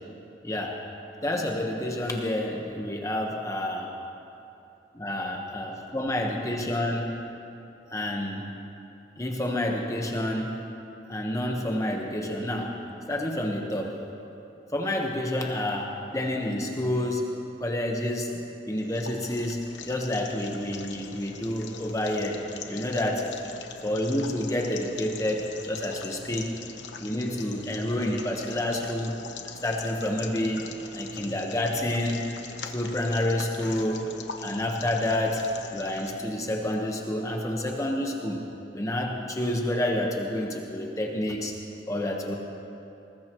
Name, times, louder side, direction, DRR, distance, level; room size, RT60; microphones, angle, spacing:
voice 1, 0.4-0.8 1.2-3.9 4.9-7.2 7.9-8.5 9.2-10.6 11.1-12.8 13.1-14.0 14.7-17.3 17.6-18.3 18.7-23.3 23.8-26.5 27.0-29.1 29.6-32.3 32.6-34.1 34.4-38.4 38.7-41.5 41.9-42.4, left 1 dB, 20° left, 0 dB, 1.2 m, -29 dB
sound 1, 18.7-36.2, left 5 dB, 80° left, 1.1 m, -42 dB
21.5 x 20.0 x 3.1 m, 2.8 s
head